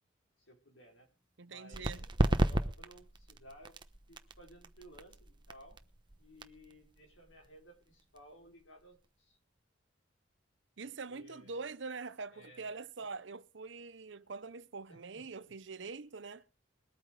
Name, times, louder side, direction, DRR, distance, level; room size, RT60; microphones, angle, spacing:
voice 1, 0.5-1.1 1.4-3.8 4.1-5.8 6.2-9.4 10.8-11.7 12.3-12.7 13.0-13.1 14.9-15.5, equal, 80° left, 5.5 m, -58 dB
voice 2, 1.4-2.0 10.8-16.4, right 4 dB, 65° right, 0.8 m, -44 dB
sound 1, 1.7-9.1, right 1 dB, 25° right, 1.0 m, -36 dB
21.0 x 8.9 x 4.9 m
head